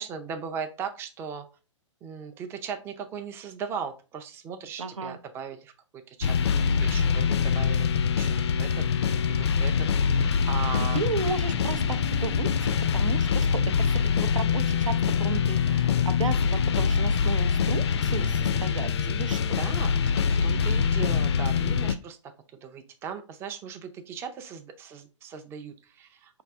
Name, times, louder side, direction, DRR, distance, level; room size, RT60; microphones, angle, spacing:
voice 1, 0.0-1.5 2.0-11.0 19.5-22.3 22.6-26.4, right 6 dB, 15° right, 0.4 m, -38 dB
voice 2, 4.8-5.2 10.9-19.6, right 5 dB, 80° right, 0.5 m, -34 dB
sound 1, 6.2-21.9, left 6 dB, 60° left, 0.4 m, -24 dB
4.7 x 2.5 x 3.4 m
figure-of-eight pair, 120°, 16 cm